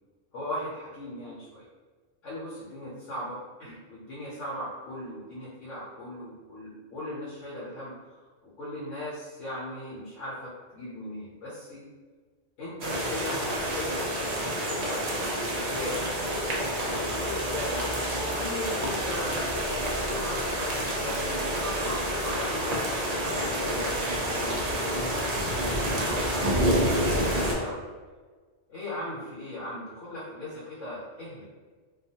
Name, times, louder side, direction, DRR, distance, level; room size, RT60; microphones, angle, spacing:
voice 1, 0.3-1.6 2.2-8.2 8.6-11.8 12.6-14.3 14.6-15.2 15.5-16.0 16.8-19.4 20.0-27.8 28.7-31.4, left 1 dB, 85° left, -8 dB, 1.1 m, -38 dB
sound 1, 12.8-27.5, equal, 65° right, 0.4 m, -28 dB
2.3 x 2.3 x 2.7 m, 1.5 s
omnidirectional pair, 1.3 m